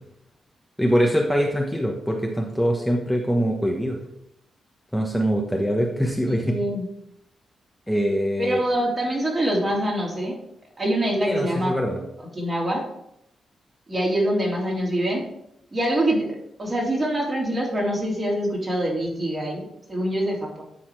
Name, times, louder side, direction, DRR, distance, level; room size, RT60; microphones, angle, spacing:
voice 1, 0.8-4.0 4.9-6.5 7.9-8.6 11.2-12.0, equal, ahead, 0 dB, 1.2 m, -23 dB
voice 2, 6.4-6.9 8.4-10.4 10.8-11.8 12.3-12.8 13.9-15.3 15.7-16.3 16.6-20.6, right 1 dB, 35° right, -2 dB, 3.2 m, -24 dB
10.0 x 4.2 x 4.7 m, 0.78 s
supercardioid pair, 55°, 0 cm